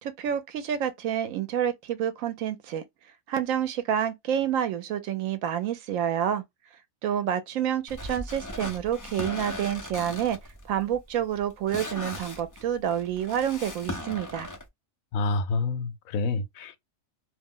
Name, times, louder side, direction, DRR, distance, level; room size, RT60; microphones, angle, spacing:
voice 1, 0.0-2.8 3.3-6.4 7.0-10.4 10.7-14.5, right 9 dB, 80° right, 1.0 m, -28 dB
sound 1, 7.9-14.6, left 1 dB, 25° left, 0.4 m, -38 dB
voice 2, 15.1-16.8, left 3 dB, 85° left, 1.0 m, -28 dB
2.6 x 2.0 x 3.6 m
omnidirectional pair, 1.4 m